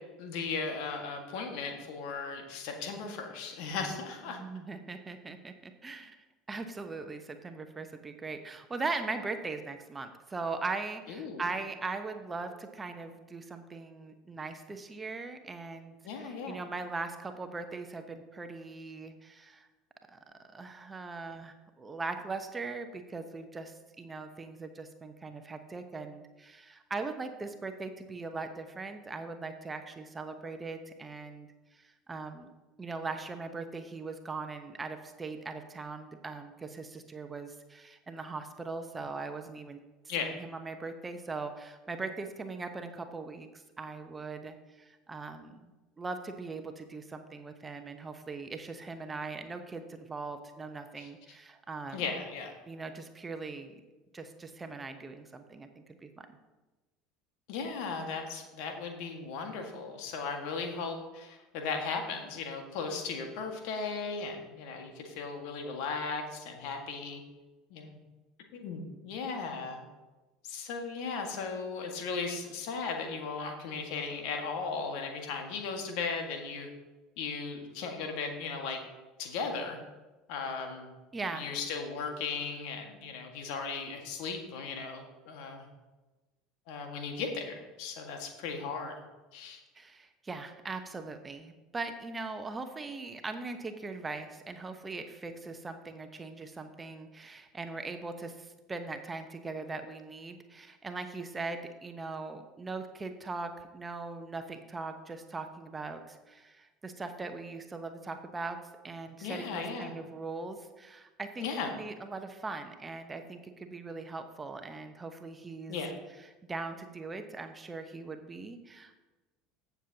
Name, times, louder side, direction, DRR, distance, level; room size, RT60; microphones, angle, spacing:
voice 1, 0.2-4.4 11.1-11.4 16.0-16.6 40.1-40.3 51.0-51.1 51.9-52.5 57.5-67.2 67.7-68.0 68.5-69.8 70.4-76.7 77.2-78.8 79.2-79.8 80.3-80.9 81.3-85.7 86.7-89.0 89.3-89.6 109.2-109.9 111.4-111.7 115.7-115.9, left 4 dB, 60° left, 4 dB, 1.7 m, -36 dB
voice 2, 4.3-6.2 6.5-19.7 20.1-20.2 20.5-32.5 32.8-39.8 40.2-43.5 43.8-45.7 46.0-52.0 52.7-53.7 54.1-56.3 81.1-81.5 89.7-115.8 116.2-119.0, right 3 dB, 20° right, 7 dB, 0.9 m, -40 dB
15.0 x 7.0 x 2.9 m, 1.1 s
figure-of-eight pair, 70°, 0 cm